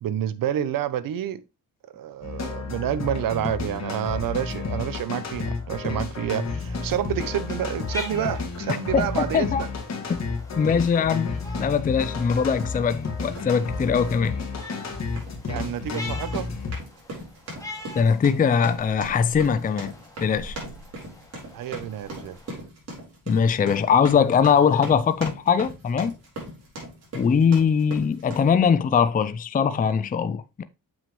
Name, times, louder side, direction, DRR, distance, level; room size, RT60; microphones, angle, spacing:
voice 1, 0.0-1.4 1.9-9.7 15.5-16.4 21.5-22.4, right 10 dB, 70° right, 0.8 m, -29 dB
sound 1, 2.2-16.8, left 4 dB, 50° left, 2.2 m, -31 dB
sound 2, 6.7-22.6, left 2 dB, 10° left, 2.2 m, -44 dB
voice 2, 8.9-9.6 10.1-10.2 10.6-14.3 18.0-19.9 20.2-20.5 23.3-26.2 27.2-30.6, left 6 dB, 25° left, 0.5 m, -21 dB
sound 3, 13.3-13.5 14.0-14.3 15.0-28.5, right 1 dB, 45° right, 4.4 m, -39 dB
7.3 x 6.0 x 3.1 m
cardioid pair, 105°, 34 cm